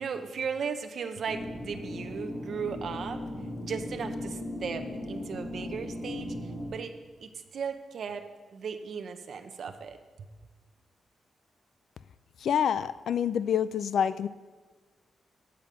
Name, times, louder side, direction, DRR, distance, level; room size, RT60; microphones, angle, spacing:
voice 1, 0.0-3.2 3.6-6.9 7.2-8.2 8.5-10.0, right 6 dB, 55° right, 6 dB, 0.7 m, -36 dB
sound 1, 1.3-6.7, left 1 dB, 40° left, 2.6 m, -37 dB
voice 2, 12.4-14.3, left 8 dB, 70° left, 15 dB, 0.3 m, -27 dB
8.9 x 5.2 x 7.7 m, 1.3 s
wide cardioid pair, 175°, 0 cm